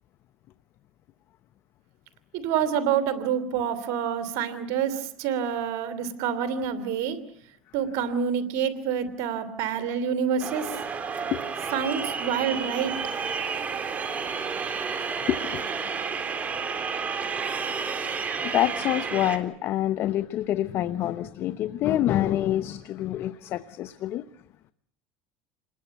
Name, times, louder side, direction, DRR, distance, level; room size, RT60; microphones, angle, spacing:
voice 1, 2.3-7.2 7.7-10.7 11.7-12.9, right 8 dB, 65° right, 12 dB, 3.1 m, -27 dB
sound 1, 10.4-19.4, right 5 dB, 30° right, 3.8 m, -31 dB
voice 2, 15.2-15.7 17.6-17.7 18.5-24.2, left 13 dB, 55° left, 13 dB, 1.1 m, -27 dB
28.5 x 21.0 x 8.4 m, 0.65 s
supercardioid pair, 100°, 5 cm